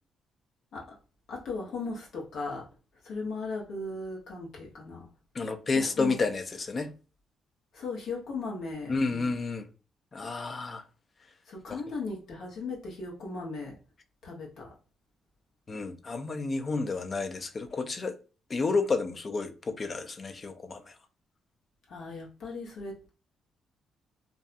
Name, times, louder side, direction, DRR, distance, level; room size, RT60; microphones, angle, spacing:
voice 1, 1.3-2.7 3.0-5.1 5.7-6.2 7.7-9.3 11.5-13.8 14.2-14.7 21.9-23.1, left 3 dB, 70° left, 0.9 m, -37 dB
voice 2, 5.3-6.9 8.9-9.7 10.1-10.8 11.7-11.8 15.7-18.1 18.5-20.8, left 4 dB, 35° left, 0.4 m, -30 dB
2.6 x 2.2 x 2.5 m
cardioid pair, 90°, 0 cm